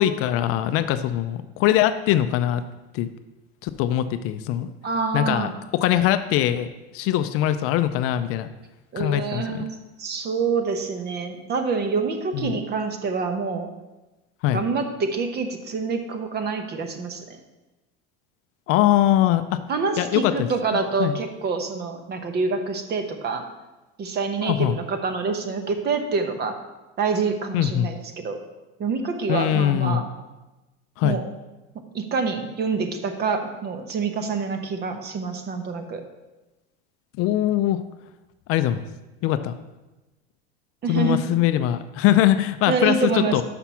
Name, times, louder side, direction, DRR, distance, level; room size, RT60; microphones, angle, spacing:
voice 1, 0.0-2.6 2.9-3.1 3.6-4.7 5.1-8.5 9.0-9.6 12.3-12.6 14.4-14.6 18.7-19.6 20.0-20.3 20.7-21.2 24.4-24.8 27.5-27.9 29.3-30.0 31.0-31.2 37.2-37.8 38.5-38.8 39.2-39.5 40.9-43.4, left 12 dB, 50° left, 11 dB, 0.4 m, -22 dB
voice 2, 4.8-5.5 8.9-9.7 10.0-13.7 14.5-17.2 19.7-23.4 24.0-26.6 27.0-28.4 28.8-30.1 31.0-31.2 31.9-36.0 40.8-41.2 42.7-43.4, right 4 dB, 35° right, 7 dB, 0.9 m, -26 dB
5.9 x 5.9 x 5.6 m, 1.1 s
supercardioid pair, 130°, 30 cm